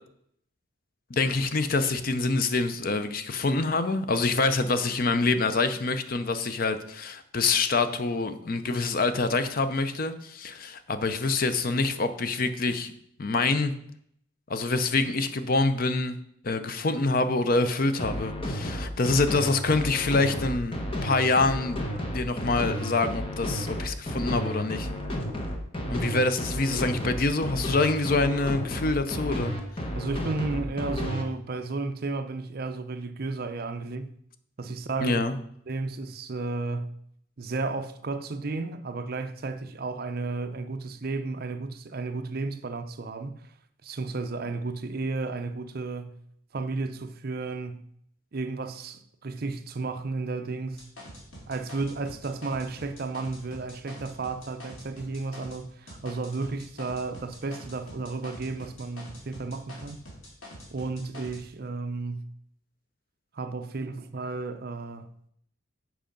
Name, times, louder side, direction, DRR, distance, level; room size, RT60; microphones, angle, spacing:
voice 1, 1.1-12.9 13.2-13.7 14.5-16.2 16.4-21.8 22.1-24.9 25.9-29.5 35.0-35.4, left 3 dB, 45° left, 0.5 m, -26 dB
sound 1, 18.0-31.2, equal, 25° left, 1.1 m, -32 dB
voice 2, 29.9-34.1 34.6-35.2 35.7-36.9 37.4-43.4 43.8-46.2 46.5-47.8 48.3-50.9 51.5-60.0 60.7-62.3 63.3-65.1, right 3 dB, 45° right, 0.5 m, -33 dB
sound 2, 50.7-55.6 55.9-61.4, equal, 80° left, 2.5 m, -45 dB
7.6 x 5.0 x 5.2 m
head